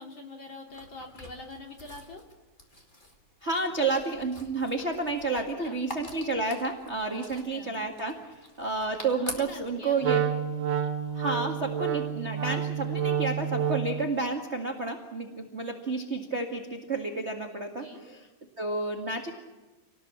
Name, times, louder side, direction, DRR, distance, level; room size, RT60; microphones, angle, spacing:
voice 1, 0.0-2.2 5.3-5.8 7.1-7.7 9.2-10.1 12.4-13.0 17.7-18.0, left 2 dB, 35° left, 1 dB, 3.2 m, -45 dB
sound 1, 0.7-9.8, left 1 dB, 15° left, 2.2 m, -46 dB
voice 2, 3.4-8.2 8.6-10.2 11.1-18.2 18.6-19.3, right 3 dB, 25° right, 2 dB, 1.5 m, -31 dB
Wind instrument woodwind instrument, 10.0-14.1, right 8 dB, 60° right, 1.4 m, -29 dB
27.5 x 19.0 x 7.4 m, 1.2 s
omnidirectional pair, 3.9 m